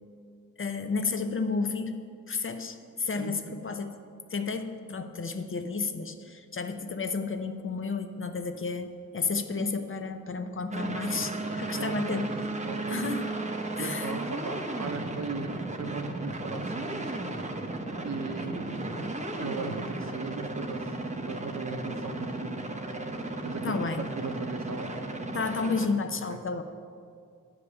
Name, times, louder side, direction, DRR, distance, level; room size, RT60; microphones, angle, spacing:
voice 1, 0.6-2.0 2.3-4.0 4.3-12.3 12.9-13.3 13.8-14.2 23.6-24.0 25.3-26.6, left 4 dB, 40° left, 7 dB, 0.6 m, -32 dB
voice 2, 3.2-3.6 11.7-12.3 12.6-13.1 13.8-17.1 18.0-19.0 19.4-22.6 23.4-24.9 26.3-26.4, right 4 dB, 55° right, 6 dB, 0.8 m, -37 dB
sound 1, 10.7-25.9, right 2 dB, 20° right, 0.7 m, -35 dB
9.6 x 4.9 x 7.1 m, 2.3 s
wide cardioid pair, 120°, 32 cm